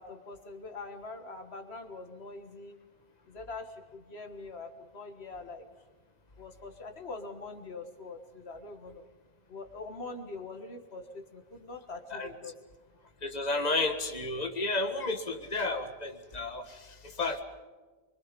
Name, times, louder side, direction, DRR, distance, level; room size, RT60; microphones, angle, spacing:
voice 1, 0.0-2.8 3.3-5.6 6.4-9.0 9.5-12.5, left 3 dB, 85° left, 5 dB, 1.9 m, -43 dB
voice 2, 13.2-17.4, left 2 dB, 40° left, 5 dB, 1.8 m, -32 dB
26.0 x 23.5 x 5.3 m, 1.3 s
omnidirectional pair, 1.1 m